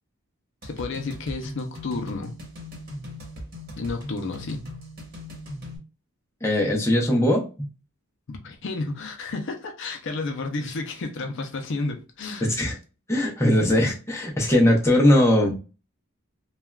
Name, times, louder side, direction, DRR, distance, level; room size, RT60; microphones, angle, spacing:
voice 1, 0.6-2.3 3.8-4.6 8.3-12.5, left 3 dB, 55° left, 0.4 m, -31 dB
sound 1, 0.6-5.8, left 1 dB, 45° right, 1.1 m, -39 dB
voice 2, 6.4-7.4 12.4-12.8 13.1-15.5, left 1 dB, 10° left, 0.6 m, -20 dB
3.3 x 2.3 x 2.2 m
head